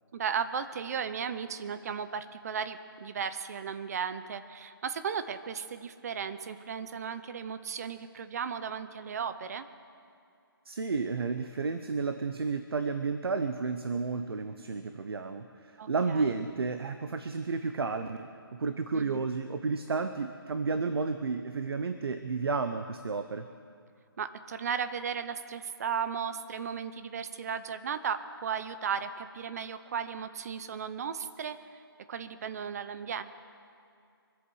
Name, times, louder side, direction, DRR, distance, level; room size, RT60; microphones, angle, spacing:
voice 1, 0.1-9.7 15.8-16.3 18.9-19.2 24.2-31.8 32.1-33.2, right 7 dB, 40° right, 11 dB, 0.8 m, -35 dB
voice 2, 10.7-23.5, right 4 dB, 75° right, 9 dB, 0.8 m, -32 dB
24.0 x 8.2 x 6.4 m, 2.4 s
hypercardioid pair, 160°, 13 cm